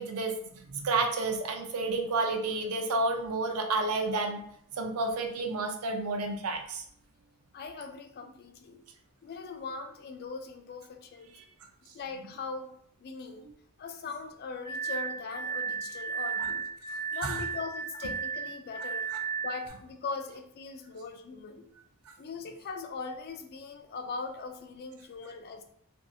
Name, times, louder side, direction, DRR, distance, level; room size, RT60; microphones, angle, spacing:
voice 1, 0.0-4.4 4.8-6.8 16.4-16.5 17.2-17.4, right 3 dB, 80° right, 5 dB, 0.5 m, -30 dB
voice 2, 7.5-8.8 9.2-11.3 11.9-12.7 13.0-13.5 13.8-16.7 17.1-19.1 19.4-21.7 22.2-25.6, left 4 dB, 45° left, 7 dB, 0.3 m, -40 dB
Glass, 14.6-19.7, right 6 dB, 25° right, 0.4 m, -34 dB
2.6 x 2.5 x 2.3 m, 0.68 s
head